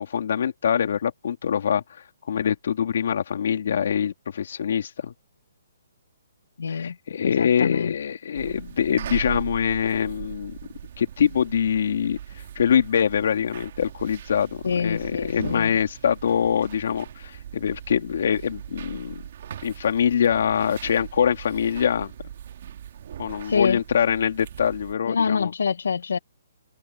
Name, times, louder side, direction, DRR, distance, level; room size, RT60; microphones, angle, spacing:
voice 1, 0.0-1.8 2.3-5.1 6.7-10.6 11.0-12.2 12.5-19.2 19.6-22.1 23.2-25.5, left 8 dB, 55° left, 3.3 m, -24 dB
voice 2, 6.6-6.9 7.2-7.9 14.6-15.7 23.4-23.8 25.1-26.2, left 6 dB, 80° left, 1.5 m, -25 dB
sound 1, 8.3-24.9, right 10 dB, 45° right, 2.6 m, -39 dB
open air
hypercardioid pair, 170°, 0 cm